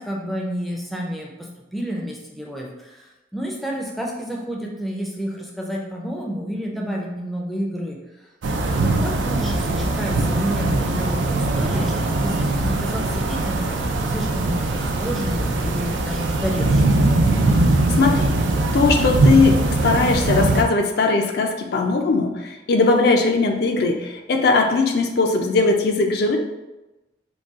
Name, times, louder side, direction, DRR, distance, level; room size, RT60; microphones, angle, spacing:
voice 1, 0.0-8.0 8.7-17.0, equal, ahead, -1 dB, 0.4 m, -30 dB
sound 1, 8.4-20.6, right 2 dB, 85° right, 0.4 m, -21 dB
voice 2, 17.9-18.3 18.7-26.4, left 3 dB, 60° left, 4 dB, 0.4 m, -19 dB
3.9 x 2.2 x 3.6 m, 1.0 s
head